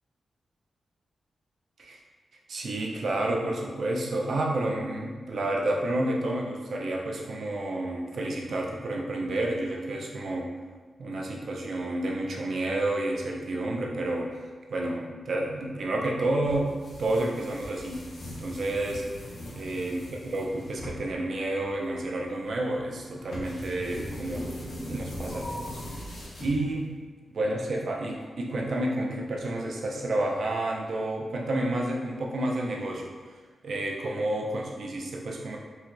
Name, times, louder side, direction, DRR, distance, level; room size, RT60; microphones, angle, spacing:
voice 1, 2.5-10.5 11.0-14.4 14.7-16.7 17.0-18.1 18.4-19.0 19.5-24.5 24.9-26.1 26.4-26.9 27.3-33.4 33.6-35.6, right 1 dB, 65° right, -1 dB, 0.5 m, -30 dB
sound 1, 16.4-27.0, left 1 dB, 75° left, 0.7 m, -40 dB
4.3 x 2.2 x 2.5 m, 1.4 s
wide cardioid pair, 110°, 0 cm